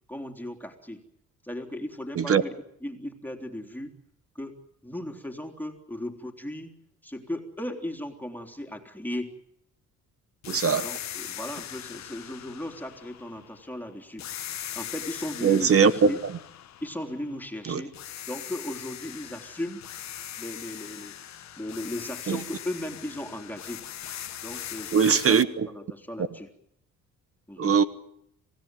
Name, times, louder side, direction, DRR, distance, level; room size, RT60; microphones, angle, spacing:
voice 1, 0.1-1.0 1.4-2.5 2.8-3.9 4.4-4.6 4.8-6.7 7.0-9.3 10.8-14.3 14.7-16.2 16.8-17.9 18.2-19.8 20.4-21.1 21.6-23.9 24.4-25.4 25.7-26.5 27.5-27.7, left 1 dB, 5° left, 3.6 m, -36 dB
sound 1, 10.4-13.7 14.2-17.6 17.9-25.4, left 11 dB, 65° left, 1.2 m, -40 dB
voice 2, 10.5-10.9 15.4-16.1 17.6-17.8 22.3-22.4 24.9-25.7 27.6-27.8, right 6 dB, 50° right, 1.3 m, -21 dB
27.0 x 17.0 x 9.2 m
cardioid pair, 90°, 30 cm